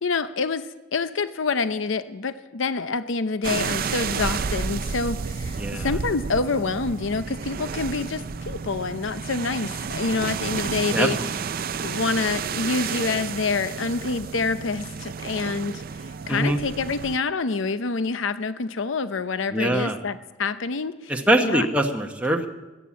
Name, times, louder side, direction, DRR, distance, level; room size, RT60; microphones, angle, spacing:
voice 1, 0.0-11.2 11.8-21.7, left 4 dB, 70° left, 12 dB, 0.7 m, -27 dB
sound 1, 3.4-17.2, right 6 dB, 45° right, 0.4 m, -31 dB
voice 2, 10.9-11.3 16.3-16.6 19.5-20.0 21.1-22.5, right 1 dB, 5° right, 2 dB, 0.9 m, -23 dB
14.5 x 11.5 x 8.5 m, 1.1 s
head